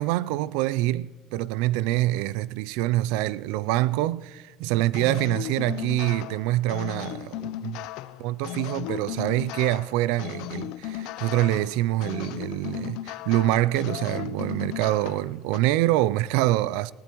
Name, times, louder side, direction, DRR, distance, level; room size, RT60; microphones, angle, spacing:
voice 1, 0.0-7.8 8.2-16.9, right 16 dB, 80° right, 0.3 m, -25 dB
sound 1, 4.9-15.6, left 13 dB, 65° left, 0.5 m, -36 dB
19.5 x 17.0 x 3.0 m
cardioid pair, 150°, 0 cm